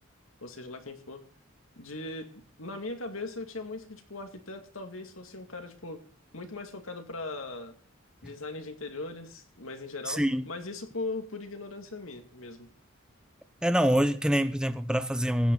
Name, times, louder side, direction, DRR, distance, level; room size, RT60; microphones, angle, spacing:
voice 1, 0.4-1.2 1.8-6.0 6.3-7.7 8.2-12.7, left 2 dB, 85° left, 5 dB, 2.5 m, -39 dB
voice 2, 10.1-10.4 13.6-15.5, equal, 5° right, 10 dB, 0.9 m, -25 dB
16.0 x 11.5 x 4.0 m, 0.41 s
head